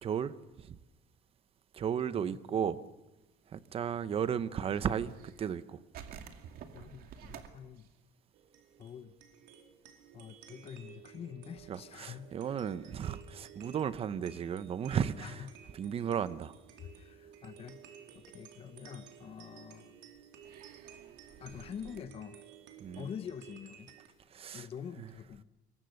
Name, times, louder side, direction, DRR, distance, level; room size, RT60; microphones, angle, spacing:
voice 1, 0.0-0.8 1.7-2.8 3.5-5.8 11.7-15.5 15.7-16.6 22.8-23.1 24.3-24.7 25.0-25.1, right 8 dB, 35° right, 14 dB, 0.9 m, -34 dB
voice 2, 2.1-2.6 6.7-7.9 8.8-9.2 10.1-12.6 15.2-15.7 17.0-17.8 18.1-20.0 21.4-22.4 23.0-23.9 24.5-25.4, left 8 dB, 35° left, 10 dB, 0.9 m, -46 dB
sound 1, 3.4-5.6 5.9-9.2 9.4-9.6 10.0-10.3 10.6-14.0 14.8-14.9 15.9-16.2 16.7-17.4 17.9-18.0 19.3-19.4 20.4-22.0, right 8 dB, 55° right, 2.4 m, -53 dB
sound 2, 8.3-24.1, right 8 dB, 90° right, 4.1 m, -55 dB
26.0 x 23.0 x 6.6 m, 1.1 s
cardioid pair, 160°, 18 cm